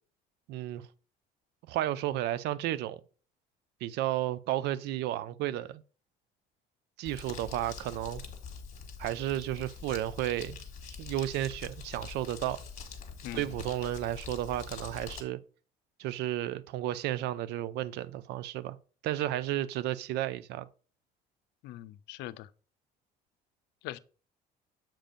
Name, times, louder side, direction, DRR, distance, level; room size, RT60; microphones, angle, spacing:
voice 1, 0.5-0.8 1.7-3.0 3.8-5.8 7.0-8.2 9.0-10.6 11.0-12.6 13.3-15.4 16.0-18.8 19.0-20.7, right 13 dB, 80° right, 0.5 m, -33 dB
Crumpling crinkling, 7.0-15.2, left 5 dB, 45° left, 1.4 m, -44 dB
voice 2, 21.6-22.5 23.8-24.0, left 15 dB, 85° left, 0.4 m, -41 dB
7.4 x 2.5 x 5.1 m
cardioid pair, 110°, 17 cm